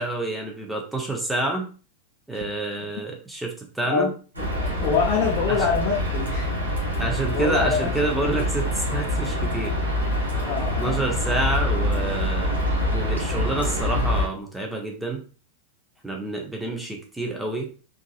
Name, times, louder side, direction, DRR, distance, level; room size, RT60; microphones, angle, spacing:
voice 1, 0.0-1.7 2.3-4.1 5.5-5.6 7.0-9.7 10.8-12.5 12.9-15.2 16.0-17.7, right 2 dB, 5° right, 1 dB, 0.8 m, -28 dB
sound 1, 4.3-14.3, left 1 dB, 80° right, 1.3 m, -25 dB
voice 2, 4.8-6.5 7.2-7.9 8.2-8.4 10.4-11.0, left 6 dB, 40° left, -3 dB, 0.7 m, -25 dB
3.8 x 2.6 x 2.4 m, 0.38 s
figure-of-eight pair, 90°, 0 cm